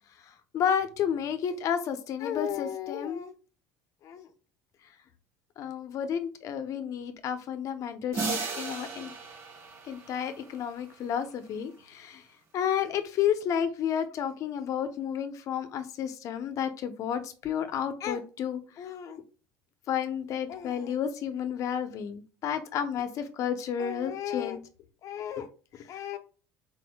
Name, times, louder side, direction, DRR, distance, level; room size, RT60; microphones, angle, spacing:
voice 1, 0.2-3.3 4.0-4.3 5.6-9.1 9.9-12.2 12.5-19.2 19.9-24.6 25.0-25.5 25.7-26.2, left 8 dB, 50° left, 10 dB, 0.8 m, -31 dB
sound 1, 8.1-10.9, right 4 dB, 45° right, 1.5 m, -36 dB
4.3 x 4.1 x 2.2 m, 0.37 s
supercardioid pair, 100°, 7 cm